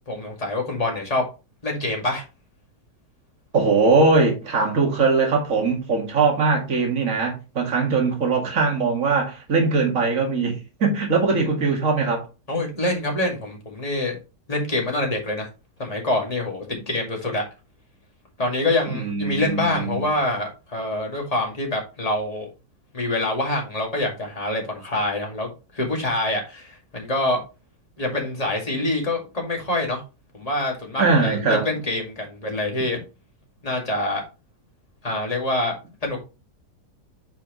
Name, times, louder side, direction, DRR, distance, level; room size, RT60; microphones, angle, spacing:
voice 1, 0.1-1.2 1.6-2.2 11.7-11.8 12.5-14.2 14.5-15.5 15.8-17.4 18.4-22.5 22.9-27.4 28.0-30.0 30.3-33.0 33.6-34.2 35.0-35.7 36.0-36.2, left 2 dB, 20° left, 2.2 m, -25 dB
voice 2, 3.5-12.3 18.9-20.1 31.0-31.7, right 4 dB, 50° right, 2.4 m, -21 dB
9.2 x 4.7 x 3.1 m
omnidirectional pair, 1.8 m